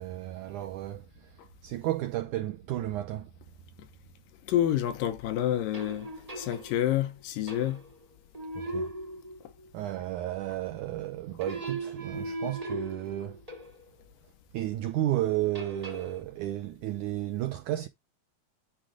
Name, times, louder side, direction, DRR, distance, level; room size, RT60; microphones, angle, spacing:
voice 1, 0.0-3.3 8.6-8.9 9.7-13.4 14.5-17.9, right 14 dB, 85° right, 1.7 m, -33 dB
voice 2, 4.4-7.8, left 12 dB, 75° left, 2.2 m, -28 dB
sound 1, 5.7-7.0 7.5-8.0 8.3-9.7 11.4-13.9 15.5-16.2, right 1 dB, 15° right, 1.3 m, -38 dB
10.5 x 3.7 x 5.0 m
omnidirectional pair, 4.4 m